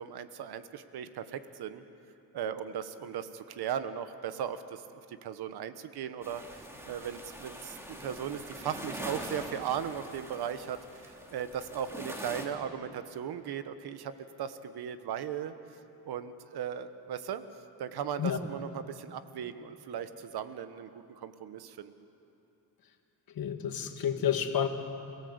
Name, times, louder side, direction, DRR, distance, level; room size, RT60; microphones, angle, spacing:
voice 1, 0.0-1.8 2.3-15.5 16.1-17.4 17.8-21.9, right 8 dB, 80° right, 11 dB, 1.2 m, -37 dB
sound 1, 6.2-12.5, equal, 5° right, 2.7 m, -43 dB
voice 2, 23.4-24.7, left 9 dB, 65° left, 6 dB, 1.8 m, -29 dB
28.0 x 17.0 x 8.0 m, 2.9 s
cardioid pair, 100°, 38 cm